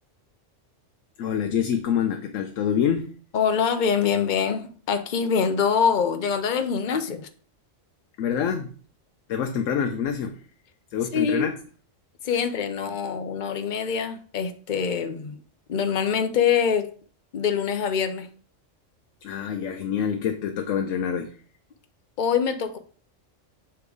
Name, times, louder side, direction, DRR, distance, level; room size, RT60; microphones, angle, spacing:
voice 1, 1.2-3.1 8.2-8.7 9.3-10.4 10.9-11.5 12.3-12.4 19.2-21.3, left 8 dB, 80° left, 1.0 m, -26 dB
voice 2, 3.3-7.3 11.1-11.5 12.2-15.4 15.7-16.9 17.3-18.3 22.2-22.8, left 7 dB, 45° left, 0.7 m, -24 dB
6.8 x 3.5 x 4.8 m
omnidirectional pair, 1.3 m